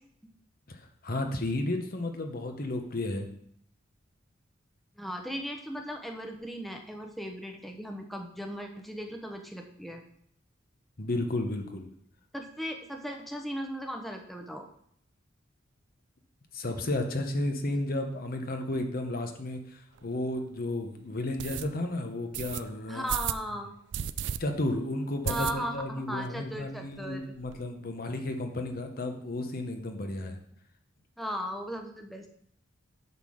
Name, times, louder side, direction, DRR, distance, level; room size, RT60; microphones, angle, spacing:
voice 1, 0.7-3.3 11.0-11.9 16.5-23.1 24.4-30.4, left 1 dB, 50° left, 5 dB, 1.0 m, -33 dB
voice 2, 5.0-10.0 12.3-14.7 22.9-23.7 25.3-27.3 31.2-32.3, equal, ahead, 3 dB, 0.8 m, -37 dB
sound 1, 20.0-20.1 20.6-20.7 21.4-21.7 22.3-22.6 23.1-23.4 23.9-24.4 24.7-24.8 25.2-25.9 26.2-26.3 26.6-26.7 26.9-27.6, right 9 dB, 65° right, 0.4 m, -33 dB
8.1 x 3.7 x 6.3 m, 0.67 s
head